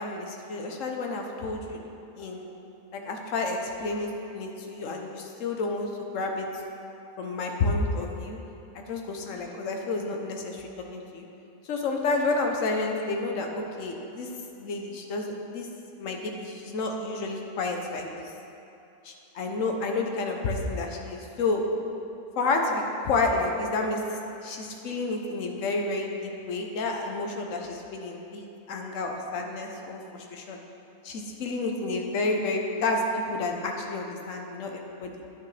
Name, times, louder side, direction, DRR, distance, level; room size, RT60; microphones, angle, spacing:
voice 1, 0.0-1.8 2.2-2.5 2.9-6.5 7.2-8.4 8.9-11.3 11.6-14.3 14.6-15.7 16.0-18.3 19.0-21.6 22.4-24.0 24.4-30.6 31.0-35.1, left 3 dB, 60° left, 2 dB, 1.2 m, -30 dB
9.8 x 9.4 x 3.3 m, 2.9 s
omnidirectional pair, 1.6 m